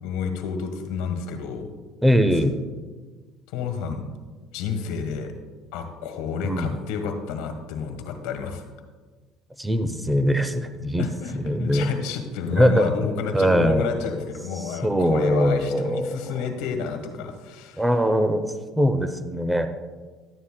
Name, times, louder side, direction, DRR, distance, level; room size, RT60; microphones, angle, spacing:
voice 1, 0.0-1.7 3.5-4.0 4.5-5.3 5.7-8.6 11.0-17.9, left 6 dB, 80° left, 6 dB, 1.3 m, -30 dB
voice 2, 2.0-2.6 6.4-6.7 9.6-11.0 11.4-11.9 12.5-12.9 13.3-13.9 14.8-16.4 17.8-19.7, equal, 5° right, 9 dB, 0.6 m, -21 dB
12.5 x 9.5 x 2.2 m, 1.4 s
supercardioid pair, 95°, 0 cm